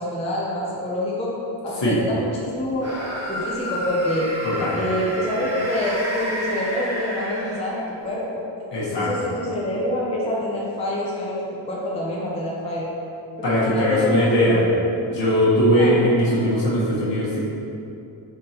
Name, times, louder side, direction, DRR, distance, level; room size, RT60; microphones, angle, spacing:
voice 1, 0.0-1.3 1.6-2.9 3.3-4.3 4.7-8.4 8.9-11.4 11.7-12.9 13.5-14.6 15.6-17.1, left 1 dB, 15° left, -5 dB, 0.5 m, -26 dB
sound 1, 2.8-8.0, equal, 30° right, 1.2 m, -31 dB
voice 2, 4.4-4.8 8.7-9.3 13.4-14.6 15.0-17.4, equal, 65° left, -8 dB, 1.4 m, -20 dB
5.1 x 3.6 x 2.9 m, 2.7 s
wide cardioid pair, 160°, 47 cm